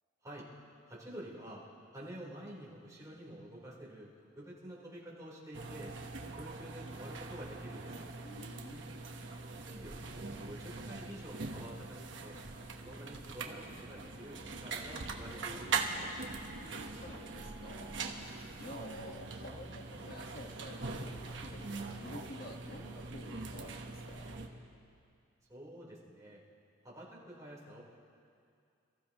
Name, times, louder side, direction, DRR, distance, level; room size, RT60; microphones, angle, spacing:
voice 1, 0.9-1.6 1.9-4.1 4.4-5.9 6.3-8.1 9.5-12.4 12.8-16.1 22.1-22.2 25.5-26.4 26.8-27.8, right 1 dB, 20° right, -6 dB, 3.9 m, -49 dB
sound 1, 5.5-24.5, right 4 dB, 70° right, 1.2 m, -42 dB
voice 2, 8.2-8.9 16.4-18.0 18.6-24.4, left 1 dB, 50° left, 2 dB, 1.6 m, -50 dB
28.5 x 15.0 x 3.1 m, 2.4 s
head